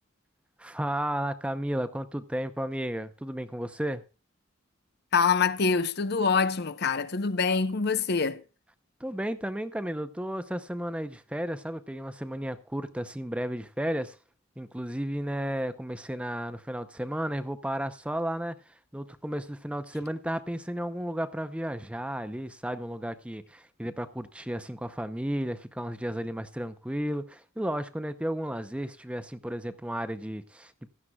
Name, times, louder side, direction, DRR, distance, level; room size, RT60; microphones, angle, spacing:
voice 1, 0.6-4.0 9.0-14.2 14.6-18.5 18.9-30.9, equal, 5° right, 0.6 m, -33 dB
voice 2, 5.1-8.4, left 5 dB, 55° left, 0.8 m, -25 dB
16.0 x 12.5 x 2.3 m
head